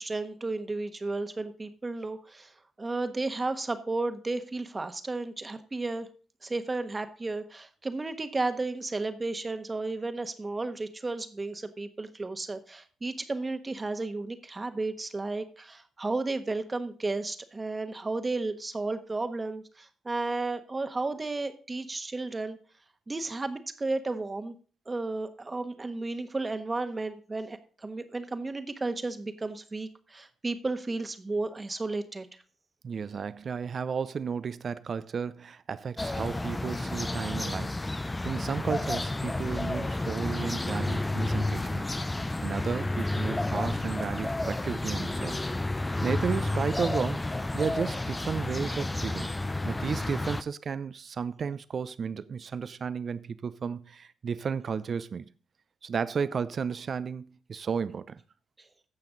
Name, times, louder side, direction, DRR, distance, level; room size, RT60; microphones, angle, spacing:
voice 1, 0.0-6.1 6.4-22.6 23.1-24.5 24.9-32.3 58.6-58.7, right 3 dB, 30° right, 1.3 m, -33 dB
voice 2, 32.8-37.7 38.0-41.9 42.4-45.4 46.0-47.2 47.5-49.4 49.6-55.3 55.8-58.2, right 6 dB, 55° right, 0.6 m, -33 dB
sound 1, 36.0-50.4, left 2 dB, 20° left, 0.5 m, -31 dB
15.5 x 5.8 x 3.9 m
supercardioid pair, 60°, 0 cm